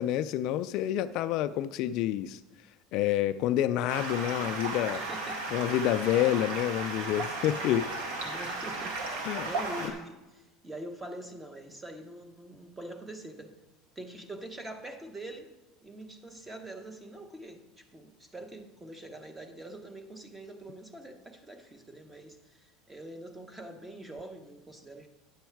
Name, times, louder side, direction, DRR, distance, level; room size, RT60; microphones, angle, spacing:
voice 1, 0.0-2.4 2.9-5.0 5.5-7.9 9.2-9.5 9.8-9.9, left 12 dB, 55° left, 12 dB, 0.3 m, -28 dB
Stream, 3.9-9.9, right 2 dB, 90° right, 1.8 m, -35 dB
voice 2, 4.9-5.4 7.4-7.9 8.2-13.5 13.9-15.5 15.8-25.1, right 1 dB, 10° right, 6 dB, 1.0 m, -44 dB
9.8 x 7.1 x 4.6 m, 1.0 s
cardioid pair, 145°, 0 cm